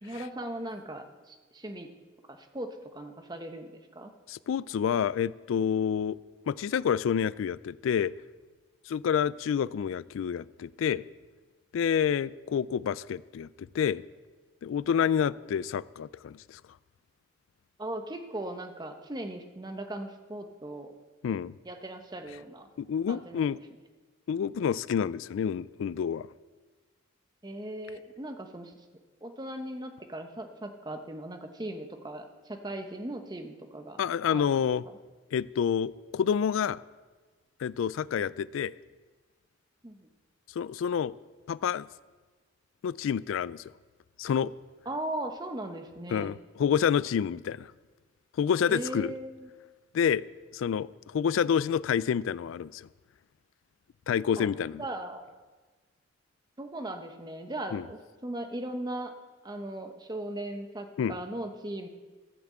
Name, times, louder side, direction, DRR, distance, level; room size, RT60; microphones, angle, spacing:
voice 1, 0.0-1.9 2.3-4.1 17.8-20.9 21.6-22.7 23.1-23.5 27.4-28.7 29.2-34.0 34.3-34.5 39.8-40.1 44.9-46.3 48.7-49.5 54.4-54.5 54.8-55.2 56.6-59.2 59.4-61.9, right 1 dB, 20° right, 6 dB, 0.9 m, -38 dB
voice 2, 4.3-6.2 6.5-8.1 8.9-11.0 11.7-14.0 14.6-16.6 21.2-21.5 22.8-23.6 24.3-26.3 34.0-34.8 35.3-36.8 37.6-38.7 40.6-41.1 41.5-41.9 42.8-43.6 44.2-44.5 46.1-47.7 48.4-49.1 49.9-50.2 50.5-52.9 54.1-54.8 57.7-57.8 61.0-61.2, left 7 dB, 80° left, 19 dB, 0.3 m, -28 dB
13.5 x 5.9 x 7.6 m, 1.3 s
head